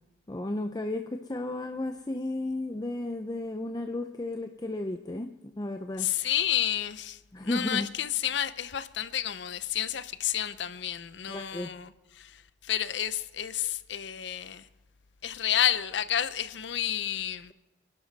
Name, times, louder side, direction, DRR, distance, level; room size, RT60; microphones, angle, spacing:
voice 1, 0.3-6.1 7.3-7.9 11.3-11.8, left 2 dB, 20° left, 0.6 m, -33 dB
voice 2, 6.0-14.7 15.2-17.5, left 10 dB, 70° left, 0.7 m, -30 dB
29.5 x 11.5 x 4.1 m
head